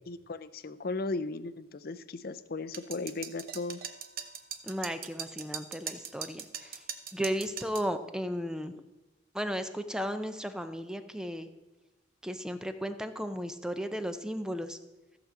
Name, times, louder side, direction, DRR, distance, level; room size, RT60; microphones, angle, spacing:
voice 1, 0.1-3.8, left 3 dB, 50° left, 13 dB, 0.6 m, -36 dB
sound 1, 2.7-7.9, right 8 dB, 50° right, 0.8 m, -40 dB
voice 2, 4.6-6.8 7.1-8.8 9.3-11.5 12.2-14.8, equal, 5° right, 9 dB, 0.6 m, -35 dB
14.5 x 5.1 x 7.4 m, 1.1 s
head